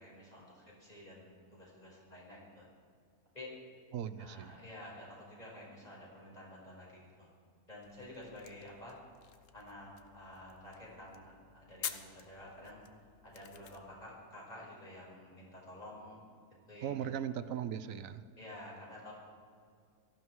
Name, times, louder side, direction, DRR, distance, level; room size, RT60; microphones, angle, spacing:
voice 1, 0.0-2.7 3.3-3.6 4.2-7.3 7.7-9.0 9.5-16.2 16.7-17.1 18.4-19.1, left 1 dB, 25° left, -4 dB, 5.4 m, -51 dB
voice 2, 3.9-4.6 16.8-18.2, right 9 dB, 65° right, 13 dB, 1.0 m, -38 dB
sound 1, 7.8-14.1, left 8 dB, 65° left, 1.1 m, -49 dB
18.0 x 14.5 x 4.7 m, 2.3 s
omnidirectional pair, 1.6 m